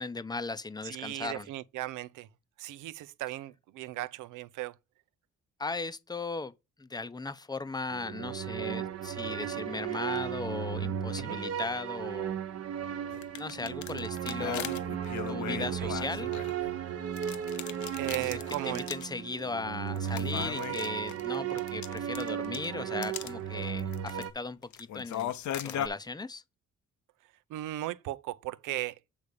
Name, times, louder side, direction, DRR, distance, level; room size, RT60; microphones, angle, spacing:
voice 1, 0.0-1.5 5.6-6.5 6.8-12.4 13.3-14.7 15.3-16.3 18.1-25.3 25.6-26.4, left 3 dB, 15° left, 0.7 m, -37 dB
voice 2, 0.8-2.3 2.6-4.8 11.2-11.4 15.8-15.9 18.0-18.9 27.5-29.0, right 16 dB, 85° right, 0.6 m, -37 dB
sound 1, 7.9-24.3, right 9 dB, 55° right, 1.1 m, -35 dB
sound 2, 13.1-16.8 17.2-19.1 19.4-19.5 20.0-22.6 23.0-23.3 23.8-24.3 24.6-25.9, left 10 dB, 70° left, 0.9 m, -38 dB
8.2 x 3.5 x 6.5 m
cardioid pair, 90°, 30 cm